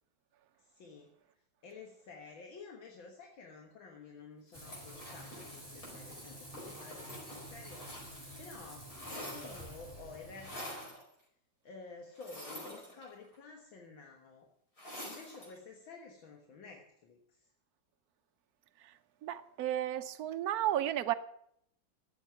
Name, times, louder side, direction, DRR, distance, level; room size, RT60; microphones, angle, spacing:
voice 1, 0.6-11.0 11.6-14.5 15.0-17.5, left 4 dB, 75° left, 2.2 m, -52 dB
Frying (food), 4.5-10.9, right 1 dB, 10° left, 3.1 m, -50 dB
sound 1, 4.6-8.4 8.7-9.8 10.4-11.0 12.2-13.4 14.8-15.6, left 1 dB, 45° left, 5.6 m, -47 dB
voice 2, 19.2-21.1, right 12 dB, 60° right, 1.1 m, -33 dB
13.0 x 8.2 x 9.3 m
omnidirectional pair, 2.1 m